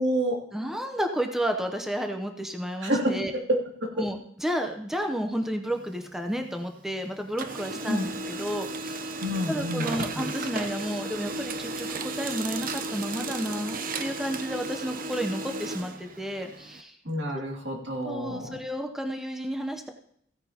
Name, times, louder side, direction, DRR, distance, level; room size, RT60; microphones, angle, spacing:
voice 1, 0.0-0.4 2.8-3.9 7.9-8.1 9.2-10.2 17.0-18.6, equal, 80° right, -1 dB, 2.5 m, -28 dB
voice 2, 0.5-3.3 4.0-9.2 9.5-17.0 18.0-19.9, equal, ahead, 4 dB, 0.7 m, -32 dB
Printer, 5.7-7.0 7.2-16.8, right 2 dB, 50° right, 0.7 m, -35 dB
16.0 x 9.6 x 2.9 m, 0.69 s
head